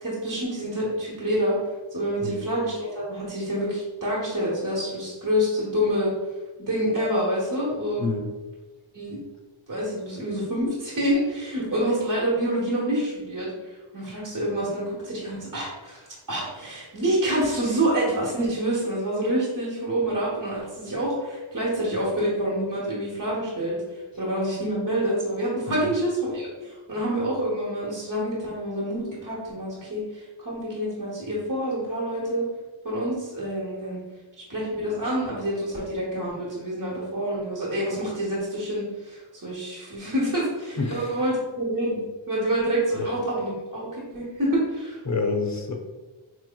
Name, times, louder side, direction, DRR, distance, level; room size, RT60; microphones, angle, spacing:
voice 1, 0.0-1.6 1.9-6.1 6.6-8.1 8.9-9.2 9.7-32.5 32.8-34.0 34.5-45.0, right 1 dB, 40° right, -6 dB, 1.1 m, -27 dB
voice 2, 8.0-8.3 25.7-25.9 40.8-41.2 43.0-43.1 45.1-45.8, left 4 dB, 35° left, 3 dB, 0.6 m, -28 dB
4.5 x 3.0 x 2.2 m, 1.2 s
wide cardioid pair, 50°, 48 cm